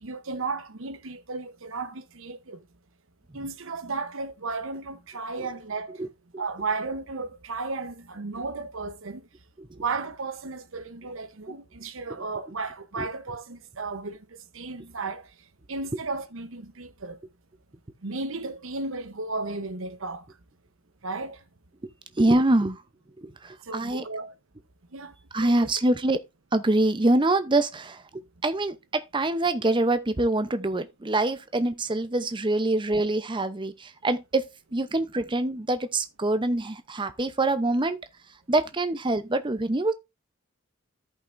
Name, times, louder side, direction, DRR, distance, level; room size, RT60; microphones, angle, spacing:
voice 1, 0.0-2.6 3.3-6.0 6.4-9.3 9.8-14.2 14.5-15.3 15.7-17.2 18.0-20.2 21.0-21.4 23.7-24.3 24.9-25.1 25.4-25.7, right 3 dB, 65° right, 0.9 m, -34 dB
voice 2, 22.2-22.8 23.2-24.0 25.3-26.2 26.5-34.4 34.7-38.0 38.5-39.9, right 2 dB, 20° right, 0.7 m, -25 dB
14.0 x 5.5 x 2.6 m
head